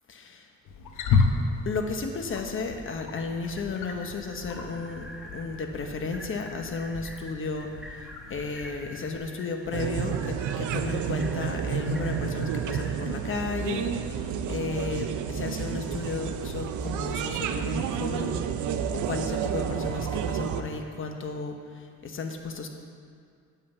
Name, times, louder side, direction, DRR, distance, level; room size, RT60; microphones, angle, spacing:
voice 1, 0.1-0.5 1.6-5.1 5.3-8.0 8.3-18.4 18.9-22.7, left 4 dB, 45° left, 4 dB, 1.1 m, -34 dB
Wild animals, 0.7-9.2, left 4 dB, 85° left, 1.0 m, -32 dB
sound 1, 2.8-13.1, equal, ahead, 1.0 m, -47 dB
sound 2, 9.7-20.6, right 7 dB, 75° right, 0.6 m, -30 dB
8.7 x 5.6 x 7.2 m, 2.2 s
cardioid pair, 90°, 30 cm